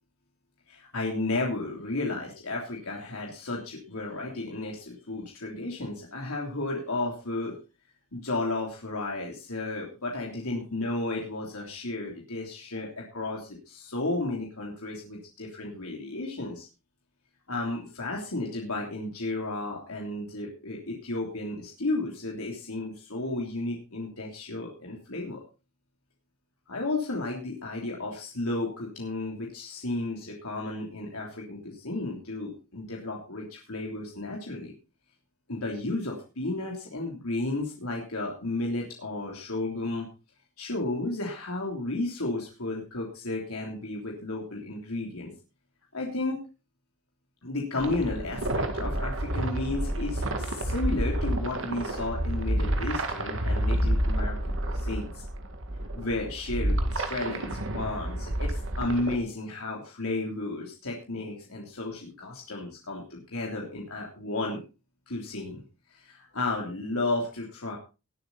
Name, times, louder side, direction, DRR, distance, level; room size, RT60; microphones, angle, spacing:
voice 1, 0.7-7.6 8.1-16.7 17.5-25.4 26.7-34.7 35.5-40.1 40.6-45.3 45.9-46.4 47.4-55.2 55.9-64.6 65.1-65.6 65.9-67.8, left 2 dB, 80° left, -1 dB, 3.3 m, -33 dB
sound 1, 47.8-59.2, right 1 dB, 60° right, 2.1 m, -29 dB
20.0 x 8.0 x 4.2 m, 0.32 s
head